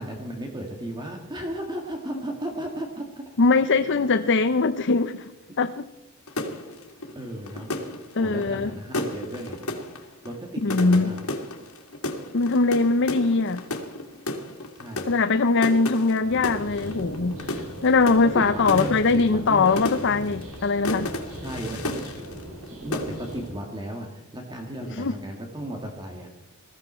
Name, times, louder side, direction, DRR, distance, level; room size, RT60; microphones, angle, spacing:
voice 1, 0.0-3.2 5.5-5.6 7.2-7.8 8.2-9.6 10.2-11.2 14.8-15.2 18.2-19.7 21.4-22.3 22.8-26.3, right 1 dB, 20° right, 1.9 m, -35 dB
voice 2, 3.4-5.9 8.2-8.7 10.6-11.2 12.3-13.6 15.1-21.1 24.8-25.1, left 3 dB, 60° left, 0.7 m, -22 dB
sound 1, 6.3-22.7 22.9-23.5, left 1 dB, 80° left, 2.3 m, -33 dB
sound 2, 16.2-23.5, equal, 85° right, 4.4 m, -39 dB
20.5 x 15.0 x 4.4 m
head